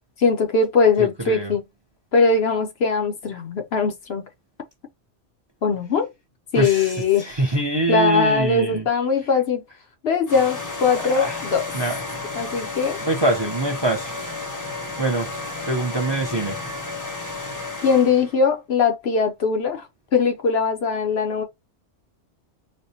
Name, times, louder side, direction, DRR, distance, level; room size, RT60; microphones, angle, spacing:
voice 1, 0.2-1.6 2.1-4.3 5.6-6.1 6.5-7.3 7.9-9.6 10.0-11.6 12.4-13.0 17.8-19.9 20.1-21.4, left 5 dB, 65° left, 0.9 m, -20 dB
voice 2, 1.0-1.5 6.6-8.8 11.2-11.4 11.7-12.0 13.0-14.1 15.0-15.3 15.6-16.6, right 2 dB, 30° right, 0.6 m, -24 dB
sound 1, 10.3-18.4, left 3 dB, 20° left, 0.6 m, -32 dB
4.2 x 2.2 x 2.7 m
omnidirectional pair, 1.2 m